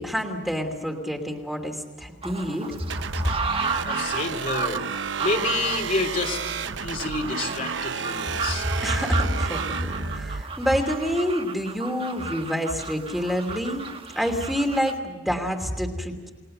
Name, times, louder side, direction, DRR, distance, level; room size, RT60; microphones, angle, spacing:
voice 1, 0.0-2.7 8.6-13.8 14.1-16.3, equal, ahead, 2 dB, 2.9 m, -27 dB
sound 1, 2.2-15.0, right 5 dB, 30° right, 1.4 m, -34 dB
sound 2, 2.9-10.4, right 5 dB, 85° right, 0.9 m, -32 dB
voice 2, 3.8-4.8 5.2-6.4 6.8-8.6, left 3 dB, 45° left, 2 dB, 3.2 m, -28 dB
30.0 x 19.5 x 6.7 m, 1.3 s
head